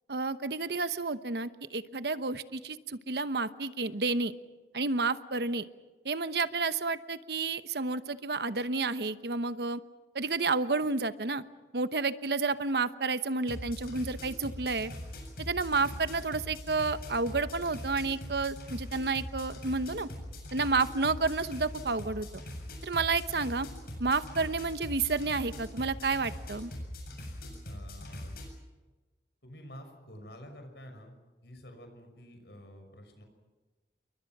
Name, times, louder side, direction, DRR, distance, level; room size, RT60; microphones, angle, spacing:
voice 1, 0.1-4.3 4.7-5.7 6.0-9.8 10.1-11.4 11.7-14.9 15.4-20.1 20.5-22.4 22.8-23.7 24.0-26.7, right 3 dB, 70° right, 12 dB, 1.0 m, -30 dB
sound 1, 13.4-28.5, left 1 dB, 55° left, 7.9 m, -42 dB
voice 2, 27.6-28.4 29.4-31.1 31.4-33.2, equal, 75° left, 6 dB, 6.0 m, -49 dB
29.0 x 23.0 x 6.1 m, 1.2 s
head